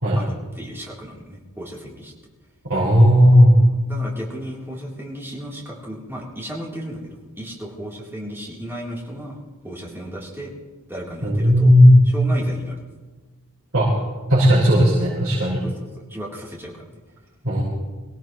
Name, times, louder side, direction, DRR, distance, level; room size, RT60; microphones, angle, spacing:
voice 1, 0.2-2.1 3.6-10.5 10.9-11.7 12.1-12.8 15.6-17.0, equal, 10° right, -4 dB, 3.5 m, -35 dB
voice 2, 2.7-3.5 11.2-12.0 13.7-13.9 14.3-15.6 17.4-17.6, equal, 65° right, -9 dB, 5.4 m, -14 dB
23.5 x 17.0 x 3.2 m, 1.3 s
head